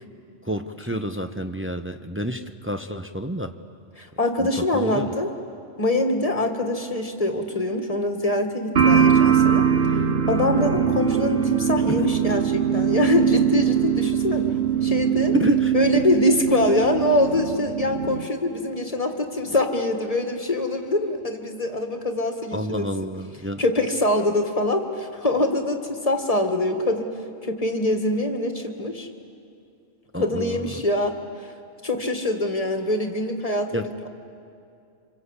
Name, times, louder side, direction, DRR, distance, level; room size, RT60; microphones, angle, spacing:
voice 1, 0.4-3.5 4.4-4.5 4.7-5.1 10.9-11.1 12.0-12.1 15.3-15.7 22.5-23.6 30.1-30.7 33.7-33.9, equal, 15° right, 7 dB, 0.6 m, -28 dB
voice 2, 4.0-5.3 5.8-9.7 10.3-15.3 15.7-22.9 23.6-27.1 27.4-29.1 30.2-31.5 31.8-34.1, left 1 dB, 30° left, 4 dB, 1.9 m, -24 dB
sound 1, 8.8-18.3, right 8 dB, 55° right, 1.1 m, -21 dB
26.5 x 26.5 x 8.2 m, 2.5 s
omnidirectional pair, 1.3 m